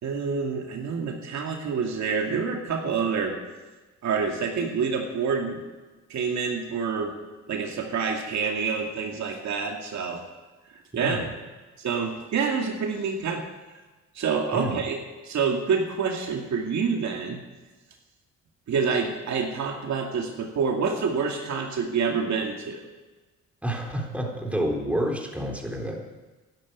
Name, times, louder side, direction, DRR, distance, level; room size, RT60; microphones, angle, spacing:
voice 1, 0.0-3.3 4.0-5.6 6.1-7.1 7.5-10.2 10.7-11.3 11.8-13.4 14.1-15.0 15.2-17.4 18.7-22.8, right 5 dB, 65° right, 2 dB, 2.4 m, -27 dB
voice 2, 23.6-26.0, equal, 5° right, 0 dB, 3.9 m, -29 dB
12.5 x 11.5 x 9.6 m, 1.2 s
cardioid pair, 90°, 30 cm